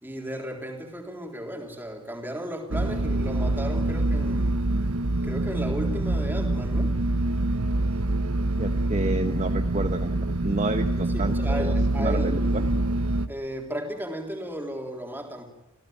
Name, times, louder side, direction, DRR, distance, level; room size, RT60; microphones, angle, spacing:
voice 1, 0.0-4.6 5.2-6.9 11.0-12.7 13.3-15.5, equal, 10° right, 2 dB, 3.6 m, -35 dB
sound 1, 2.7-13.3, right 2 dB, 80° right, 1.1 m, -25 dB
voice 2, 8.6-12.6, right 2 dB, 30° right, 6 dB, 1.1 m, -30 dB
28.0 x 16.0 x 9.1 m, 1.0 s
head